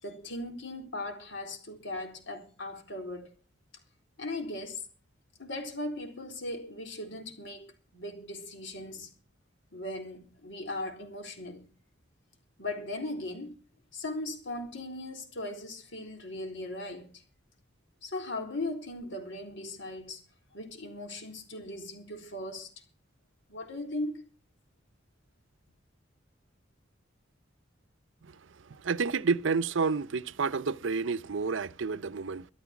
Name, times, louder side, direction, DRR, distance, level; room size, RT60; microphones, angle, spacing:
voice 1, 0.0-3.3 4.2-4.8 5.4-9.1 9.7-11.7 12.6-13.6 13.9-17.1 18.0-20.2 20.5-22.7 23.5-24.3, left 2 dB, 70° left, 4.0 m, -38 dB
voice 2, 28.7-32.5, right 4 dB, 70° right, 0.6 m, -30 dB
13.5 x 13.0 x 6.0 m
head